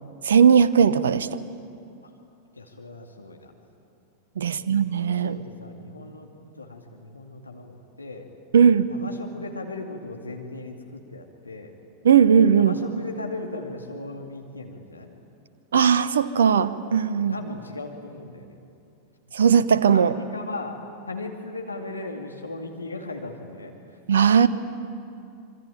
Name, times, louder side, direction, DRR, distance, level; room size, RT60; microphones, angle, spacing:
voice 1, 0.2-1.3 4.4-5.3 8.5-8.9 12.0-12.7 15.7-17.3 19.3-20.1 24.1-24.5, right 7 dB, 65° right, 14 dB, 0.9 m, -18 dB
voice 2, 2.5-3.5 4.4-4.7 5.1-6.3 6.6-8.3 8.9-11.7 12.5-15.1 17.2-18.6 19.9-20.8 21.1-24.0, left 2 dB, 80° left, 1 dB, 2.4 m, -37 dB
26.5 x 25.0 x 9.0 m, 2.5 s
figure-of-eight pair, 90°, 0 cm